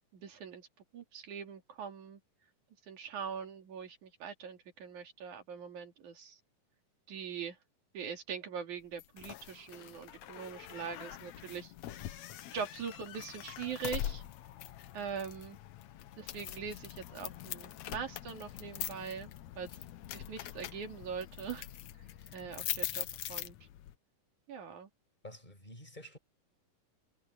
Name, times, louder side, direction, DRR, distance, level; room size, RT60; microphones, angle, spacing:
voice 1, 0.1-0.7 0.9-2.2 2.9-6.4 7.1-7.6 7.9-11.7 12.1-12.2 12.5-14.2 14.9-15.6 16.2-19.3 19.6-19.7 20.1-21.7 22.3-23.6 24.5-24.9, right 6 dB, 60° right, 4.0 m, -42 dB
sound 1, 9.0-23.9, left 12 dB, 70° left, 1.9 m, -43 dB
voice 2, 25.2-26.2, left 1 dB, 10° left, 7.8 m, -50 dB
omnidirectional pair, 3.9 m